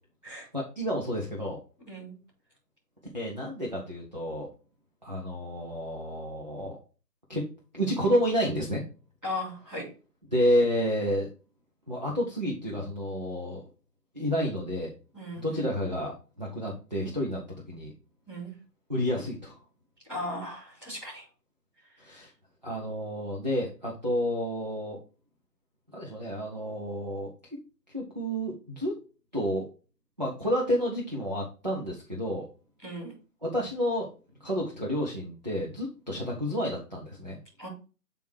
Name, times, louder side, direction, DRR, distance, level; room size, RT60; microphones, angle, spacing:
voice 1, 0.5-1.6 3.1-4.5 5.0-6.8 7.3-7.5 7.7-8.8 10.3-11.3 11.9-13.6 14.1-14.9 15.4-17.9 18.9-19.6 22.0-22.3 22.6-25.0 25.9-27.3 27.9-29.0 29.3-29.7 30.2-32.4 33.4-34.1 34.4-37.4, equal, 25° right, -2 dB, 0.7 m, -30 dB
voice 2, 1.9-2.2 9.2-9.9 15.1-15.7 18.3-18.5 20.1-21.3 32.8-33.1 37.6-37.7, left 1 dB, 5° right, -14 dB, 2.7 m, -37 dB
8.1 x 3.5 x 4.5 m, 0.35 s
hypercardioid pair, 180°, 49 cm